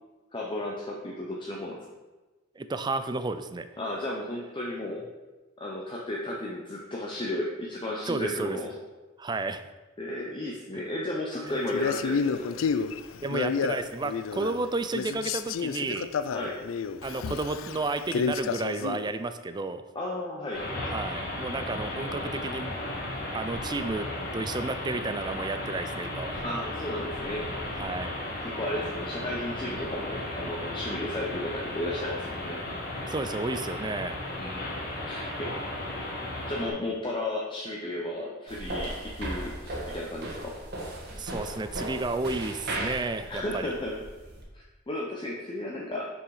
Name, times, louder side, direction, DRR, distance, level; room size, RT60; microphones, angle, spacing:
voice 1, 0.3-1.8 3.8-5.0 5.6-8.7 10.0-12.5 16.3-16.6 19.9-20.6 26.4-27.5 28.4-32.6 34.4-34.8 35.0-35.5 36.5-40.5 43.3-44.0 44.5-46.1, left 1 dB, 25° left, -2 dB, 0.8 m, -34 dB
voice 2, 2.6-3.7 8.1-8.6 9.2-9.6 11.4-11.6 13.2-16.1 17.0-19.8 20.9-22.7 23.3-24.1 24.3-26.4 27.8-28.1 33.1-34.2 41.2-43.7, right 3 dB, 20° right, 10 dB, 0.4 m, -32 dB
Male speech man speaking, 11.7-14.7 14.9-19.1, left 5 dB, 80° left, 0.4 m, -30 dB
sound 1, 20.5-36.7, left 1 dB, 50° left, 2.5 m, -35 dB
sound 2, 38.5-44.4, right 1 dB, 55° right, 1.6 m, -36 dB
6.2 x 6.1 x 4.8 m, 1.2 s
head